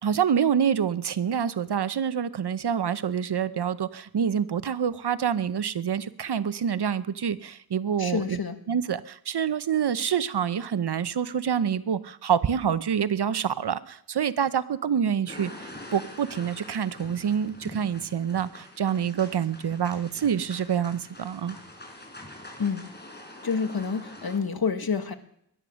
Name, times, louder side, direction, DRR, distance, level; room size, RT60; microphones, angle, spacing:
voice 1, 0.0-8.4 8.7-21.6, right 8 dB, 80° right, 14 dB, 0.9 m, -27 dB
voice 2, 8.0-8.6 22.6-22.8 23.4-25.1, left 5 dB, 70° left, 8 dB, 1.8 m, -28 dB
sound 1, 15.3-24.4, left 1 dB, 25° left, 4.8 m, -45 dB
22.0 x 9.5 x 6.4 m, 0.72 s
cardioid pair, 45°, 39 cm